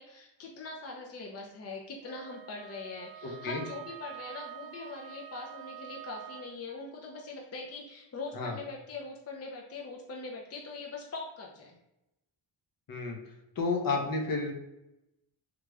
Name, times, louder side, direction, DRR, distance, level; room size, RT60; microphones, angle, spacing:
voice 1, 0.0-11.8, left 3 dB, 35° left, 0 dB, 0.6 m, -42 dB
Wind instrument woodwind instrument, 2.0-6.6, right 11 dB, 70° right, 0.5 m, -47 dB
voice 2, 3.2-3.6 8.3-8.6 12.9-13.2 13.6-14.5, left 3 dB, 50° left, 2 dB, 0.9 m, -31 dB
3.3 x 2.4 x 3.3 m, 0.91 s
cardioid pair, 80°, 45 cm